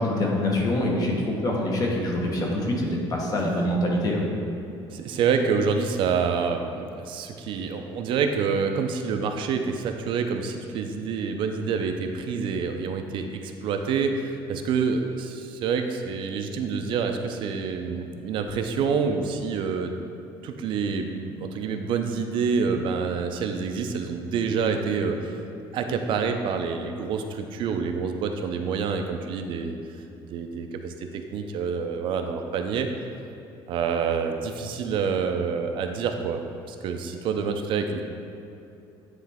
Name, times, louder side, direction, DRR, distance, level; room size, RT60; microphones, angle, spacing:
voice 1, 0.0-4.3, left 1 dB, 40° left, -1 dB, 1.1 m, -25 dB
voice 2, 4.9-19.9 20.4-25.4 25.7-29.7 30.2-32.9 33.7-36.4 36.7-38.0, right 5 dB, 60° right, 5 dB, 0.5 m, -27 dB
9.4 x 3.3 x 3.5 m, 2.7 s
cardioid pair, 135°, 10 cm